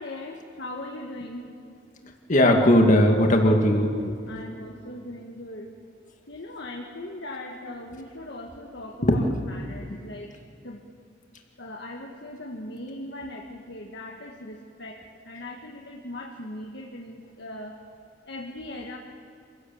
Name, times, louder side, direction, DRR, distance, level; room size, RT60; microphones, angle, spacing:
voice 1, 0.0-1.8 4.2-5.7 6.3-10.3 10.6-10.8 11.6-15.0 15.2-17.8 18.3-19.0, left 1 dB, 65° left, 0 dB, 1.6 m, -39 dB
voice 2, 2.3-4.1 9.0-9.2, left 1 dB, 45° left, 2 dB, 2.2 m, -18 dB
26.5 x 16.5 x 7.1 m, 2.4 s
head